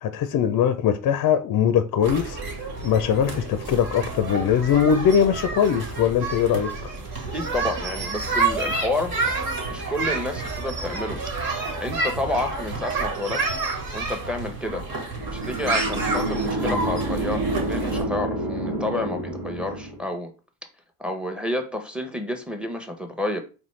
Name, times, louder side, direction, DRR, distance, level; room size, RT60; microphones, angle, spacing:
voice 1, 0.0-2.4 2.8-6.9, left 8 dB, 50° left, 0.5 m, -21 dB
sound 1, 2.0-18.0, right 3 dB, 55° right, 1.6 m, -29 dB
voice 2, 7.3-9.2 9.7-11.2 11.8-13.4 13.9-14.8 15.3-20.3 21.0-23.4, left 1 dB, ahead, 0.8 m, -30 dB
sound 2, 15.1-20.1, right 2 dB, 75° right, 1.6 m, -28 dB
4.1 x 3.2 x 3.2 m
cardioid pair, 85°, 42 cm